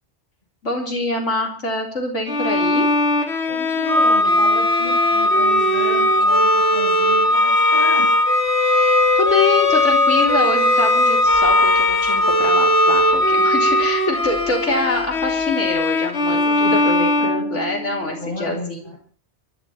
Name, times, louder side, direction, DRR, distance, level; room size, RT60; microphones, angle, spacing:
voice 1, 0.6-2.9 8.7-18.9, left 2 dB, 90° left, 0 dB, 4.3 m, -25 dB
Bowed string instrument, 2.3-18.1, left 2 dB, 70° left, 2.1 m, -21 dB
voice 2, 3.5-8.1 16.3-16.8 17.2-17.3 18.0-19.0, left 1 dB, 45° left, -2 dB, 8.3 m, -32 dB
Organ, 3.9-14.6, left 1 dB, 10° right, 1.1 m, -19 dB
23.5 x 12.0 x 4.4 m, 0.42 s
omnidirectional pair, 1.2 m